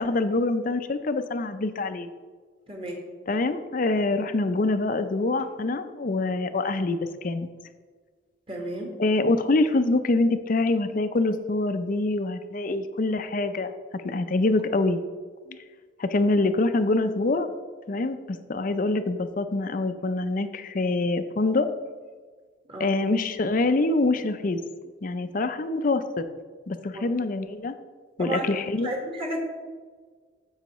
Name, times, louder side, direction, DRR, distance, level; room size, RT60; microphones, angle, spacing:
voice 1, 0.0-2.1 3.3-7.5 9.0-15.0 15.5-15.6 16.0-17.5 17.9-21.7 22.8-24.6 25.0-26.2 26.7-27.7 28.2-28.9, left 2 dB, 45° left, 10 dB, 0.5 m, -25 dB
voice 2, 2.7-3.1 8.5-9.0 22.7-22.9 26.9-27.0 28.2-28.5 28.8-29.4, right 1 dB, 30° right, 1 dB, 1.6 m, -32 dB
14.5 x 5.6 x 3.1 m, 1.5 s
head